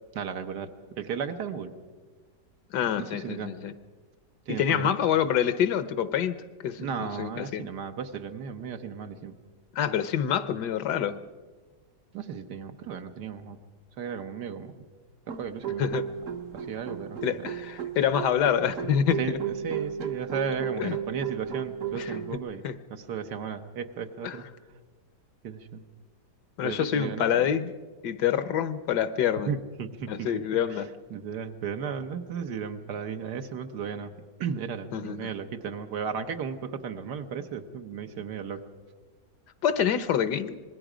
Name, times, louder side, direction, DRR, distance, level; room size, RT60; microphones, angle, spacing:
voice 1, 0.1-1.7 3.0-3.5 4.5-4.9 6.8-9.3 12.1-13.6 14.0-14.8 15.3-15.9 16.5-17.2 19.2-24.4 25.4-25.8 26.6-27.3 29.5-30.4 30.7-30.8 31.1-34.1 34.4-38.7, right 6 dB, 70° right, 6 dB, 1.5 m, -35 dB
voice 2, 2.7-3.7 4.5-7.7 9.7-11.2 15.8-16.1 17.2-19.2 20.8-21.0 21.9-22.1 22.6-22.8 24.2-24.4 26.6-27.7 28.0-29.5 30.1-30.9 34.9-35.3 39.6-40.6, left 9 dB, 70° left, 13 dB, 1.4 m, -26 dB
sound 1, 15.3-22.4, right 8 dB, 55° right, 1.2 m, -34 dB
26.0 x 20.5 x 5.0 m, 1.4 s
omnidirectional pair, 1.9 m